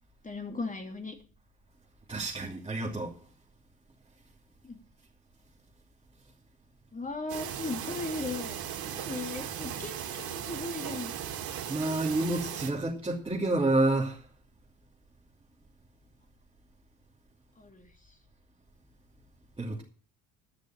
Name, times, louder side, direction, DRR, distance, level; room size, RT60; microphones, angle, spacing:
voice 1, 0.2-1.2 4.6-4.8 6.9-8.6 8.9-11.1 17.6-17.9, left 3 dB, 20° left, 3.1 m, -37 dB
voice 2, 2.1-3.1 11.7-14.2 19.6-19.8, right 2 dB, 15° right, 3.0 m, -29 dB
sound 1, 7.3-12.7, right 9 dB, 65° right, 2.7 m, -37 dB
11.5 x 6.4 x 7.8 m
hypercardioid pair, 70°, 39 cm